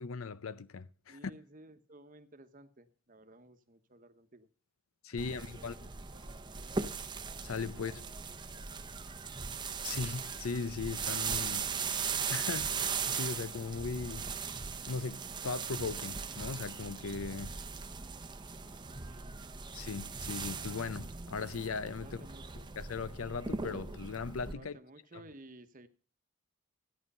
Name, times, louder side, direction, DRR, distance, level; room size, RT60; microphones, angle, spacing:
voice 1, 0.0-1.2 5.0-5.7 7.4-8.0 9.8-11.7 12.3-14.3 14.9-17.6 19.7-22.2 22.8-24.8 25.1-25.2, left 4 dB, 80° left, 0.6 m, -38 dB
voice 2, 1.1-4.5 5.1-5.7 6.1-6.8 7.7-8.0 8.5-8.9 19.1-19.5 22.0-22.4 24.5-25.9, right 2 dB, 40° right, 1.0 m, -56 dB
sound 1, 5.2-24.5, right 5 dB, 20° right, 0.7 m, -39 dB
14.0 x 9.2 x 5.4 m
head